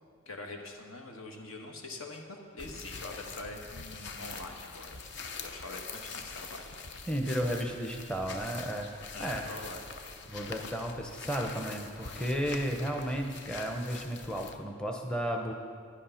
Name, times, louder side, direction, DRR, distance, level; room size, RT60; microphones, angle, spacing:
voice 1, 0.2-6.9 9.1-9.9, left 2 dB, 70° left, 2 dB, 1.4 m, -44 dB
sound 1, 2.6-14.5, left 4 dB, 50° left, 0.7 m, -44 dB
voice 2, 7.1-8.9 9.2-9.5 10.3-15.5, equal, 5° left, 2 dB, 0.7 m, -33 dB
11.5 x 10.0 x 5.7 m, 2.1 s
head